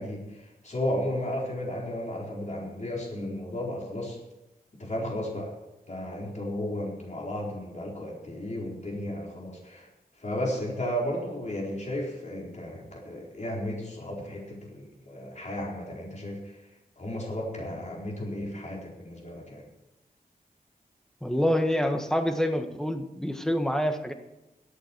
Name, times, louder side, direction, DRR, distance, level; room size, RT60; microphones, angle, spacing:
voice 1, 0.0-4.2 4.8-5.5 5.9-9.9 10.2-16.6 17.0-19.6, left 1 dB, 50° left, -3 dB, 4.5 m, -34 dB
voice 2, 21.2-24.1, equal, 5° left, 6 dB, 1.5 m, -26 dB
23.5 x 8.3 x 4.6 m, 0.99 s
wide cardioid pair, 100°, 16 cm